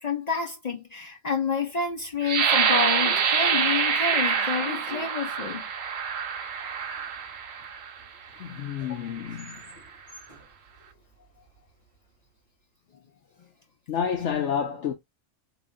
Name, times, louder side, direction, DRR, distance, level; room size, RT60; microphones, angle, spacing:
voice 1, 0.0-5.6 8.9-9.0, left 5 dB, 45° left, 0.5 m, -29 dB
Train / Sliding door, 1.8-12.0, equal, 25° left, 1.7 m, -49 dB
sound 1, 2.2-7.9 8.6-8.7 9.2-9.6, right 6 dB, 65° right, 0.8 m, -26 dB
voice 2, 8.4-9.6 13.9-14.9, left 7 dB, 70° left, 1.0 m, -29 dB
3.8 x 3.1 x 2.2 m
omnidirectional pair, 1.3 m